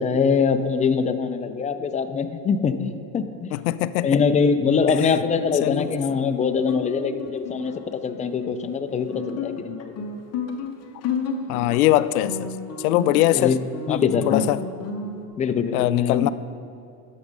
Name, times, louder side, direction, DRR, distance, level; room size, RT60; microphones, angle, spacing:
voice 1, 0.0-3.6 4.0-9.9 13.3-13.6 13.9-14.4 15.4-16.3, left 5 dB, 15° left, 9 dB, 0.4 m, -23 dB
voice 2, 3.5-4.2 4.9-5.2 5.6-5.9 11.5-12.5 12.8-13.6 13.9-14.6 15.7-16.3, left 15 dB, 80° left, 16 dB, 0.5 m, -22 dB
Guitar, 5.2-15.3, left 4 dB, 35° left, 1.1 m, -33 dB
10.5 x 7.3 x 5.3 m, 2.5 s
supercardioid pair, 110°, 44 cm